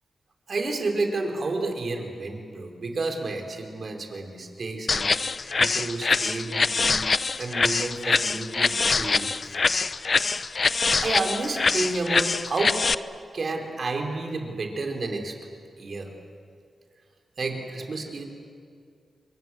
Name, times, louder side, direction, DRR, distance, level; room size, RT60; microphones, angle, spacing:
voice 1, 0.5-5.2 5.6-7.1 7.4-9.3 11.0-12.8 13.3-15.4 15.8-16.1 17.4-18.3, right 3 dB, 60° right, 3 dB, 4.6 m, -30 dB
sound 1, 4.9-12.9, left 4 dB, 55° left, 0.7 m, -24 dB
27.0 x 24.0 x 8.0 m, 2.3 s
cardioid pair, 45°, 0 cm